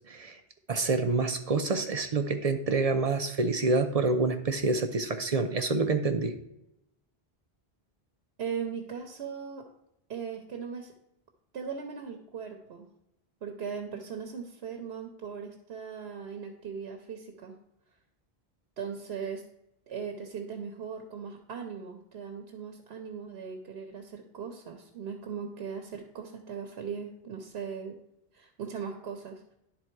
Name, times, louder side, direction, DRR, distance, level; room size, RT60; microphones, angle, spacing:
voice 1, 0.1-0.4 0.7-6.3, right 3 dB, 45° right, 7 dB, 0.6 m, -27 dB
voice 2, 8.4-9.7 10.1-10.9 11.5-12.9 13.4-17.5 18.8-19.4 19.9-28.0 28.3-29.5, right 6 dB, 85° right, 5 dB, 1.0 m, -39 dB
11.0 x 3.8 x 4.5 m, 0.83 s
omnidirectional pair, 1.0 m